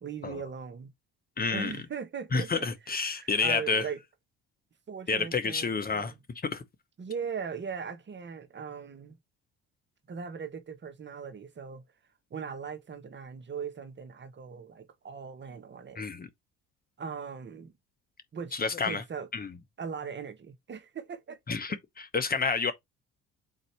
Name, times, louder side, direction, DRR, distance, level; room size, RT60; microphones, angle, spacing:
voice 1, 0.0-0.9 1.5-4.0 4.9-6.2 7.0-9.2 10.1-11.8 12.3-16.0 17.0-17.7 18.3-19.3 19.8-21.6, right 6 dB, 35° right, 0.9 m, -39 dB
voice 2, 1.4-1.7 2.3-3.8 5.1-6.1 6.5-6.6 16.0-16.3 18.5-19.0 19.3-19.5 21.5-22.7, left 4 dB, 30° left, 0.9 m, -29 dB
4.1 x 2.7 x 4.4 m
supercardioid pair, 75°, 33 cm